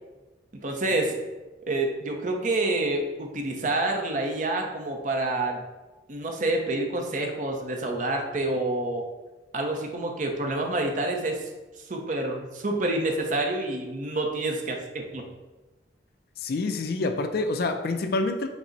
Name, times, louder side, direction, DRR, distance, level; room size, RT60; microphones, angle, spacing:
voice 1, 0.6-1.2 1.7-5.6 6.1-9.0 9.5-11.4 11.9-15.2, right 2 dB, 45° right, 2 dB, 0.6 m, -28 dB
voice 2, 16.4-18.5, left 3 dB, 55° left, 7 dB, 0.4 m, -27 dB
6.0 x 2.0 x 3.9 m, 1.2 s
head